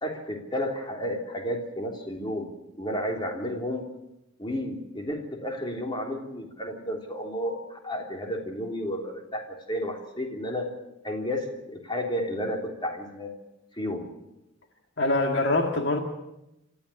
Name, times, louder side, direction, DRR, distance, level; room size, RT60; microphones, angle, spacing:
voice 1, 0.0-2.5 2.8-3.8 4.4-10.7 11.0-13.3 13.7-14.1, equal, 25° left, 2 dB, 3.3 m, -32 dB
voice 2, 15.0-16.0, left 2 dB, 60° left, 3 dB, 2.0 m, -24 dB
27.0 x 13.5 x 8.6 m, 0.93 s
head